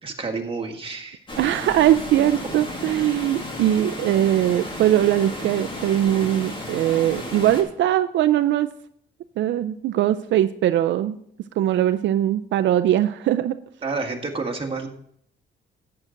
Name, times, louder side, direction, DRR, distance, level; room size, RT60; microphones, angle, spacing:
voice 1, 0.0-1.2 13.8-14.9, right 4 dB, 30° right, 2 dB, 1.6 m, -29 dB
Water, 1.3-7.6, left 1 dB, 25° left, 2.2 m, -33 dB
voice 2, 1.4-8.7 9.4-11.2 11.6-13.6, right 12 dB, 75° right, 11 dB, 0.4 m, -21 dB
11.0 x 8.7 x 3.8 m, 0.68 s
cardioid pair, 115°, 19 cm